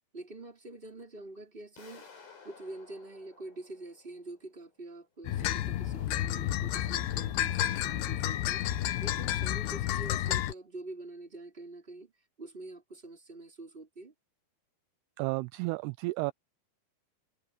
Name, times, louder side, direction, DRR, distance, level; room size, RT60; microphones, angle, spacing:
voice 1, 0.1-2.1 2.4-8.7 9.0-12.1 12.4-14.1, right 2 dB, 15° right, 4.3 m, -46 dB
sound 1, 1.8-4.6, left 5 dB, 60° left, 8.0 m, -55 dB
sound 2, 5.3-10.5, left 12 dB, 75° left, 3.1 m, -31 dB
voice 2, 15.2-16.3, right 22 dB, 85° right, 2.5 m, -32 dB
omnidirectional pair, 4.8 m